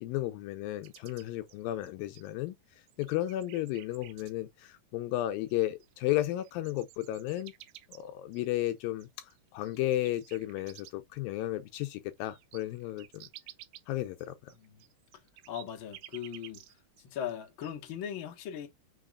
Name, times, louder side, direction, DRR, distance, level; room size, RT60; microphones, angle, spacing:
voice 1, 0.0-2.6 3.0-7.5 7.9-13.3 13.9-14.5, left 15 dB, 80° left, 2.2 m, -33 dB
sound 1, 0.8-2.5 2.9-4.3 5.5-5.6 5.8-11.2 11.6-11.7 12.0-17.0 17.3-17.9, right 14 dB, 85° right, 2.7 m, -53 dB
voice 2, 14.5-14.9 15.5-16.6 17.0-18.7, left 9 dB, 55° left, 1.4 m, -39 dB
5.9 x 3.7 x 2.4 m
omnidirectional pair, 4.4 m